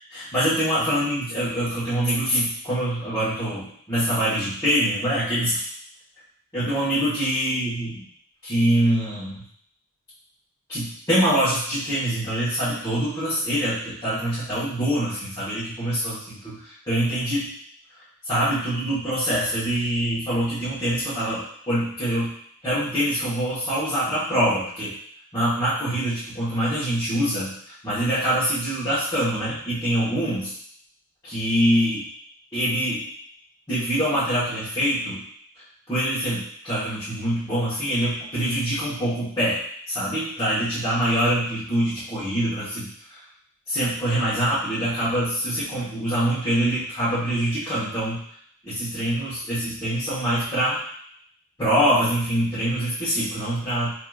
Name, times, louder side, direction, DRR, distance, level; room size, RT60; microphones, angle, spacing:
voice 1, 0.1-5.7 6.5-8.0 8.4-9.4 10.7-16.5 16.9-17.5 18.2-22.3 22.6-24.9 25.3-27.5 27.8-30.5 31.2-32.0 32.5-33.0 33.7-35.2 35.9-39.6 39.9-43.2 43.7-48.2 48.6-50.8 51.6-53.9, right 1 dB, 15° left, -13 dB, 1.2 m, -24 dB
4.6 x 2.8 x 2.4 m, 0.65 s
head